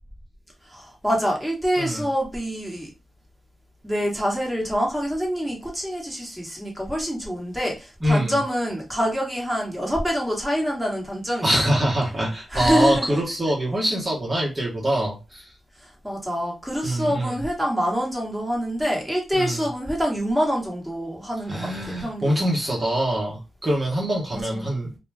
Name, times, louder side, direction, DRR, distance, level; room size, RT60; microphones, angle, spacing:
voice 1, 0.6-2.9 3.8-11.8 12.5-13.2 15.8-22.5 24.3-24.7, equal, 5° right, 1.3 m, -26 dB
voice 2, 8.0-8.4 11.4-15.5 16.8-17.4 19.3-19.6 21.5-24.9, right 1 dB, 30° right, 1.0 m, -24 dB
2.2 x 2.2 x 3.3 m
cardioid pair, 55°, 0 cm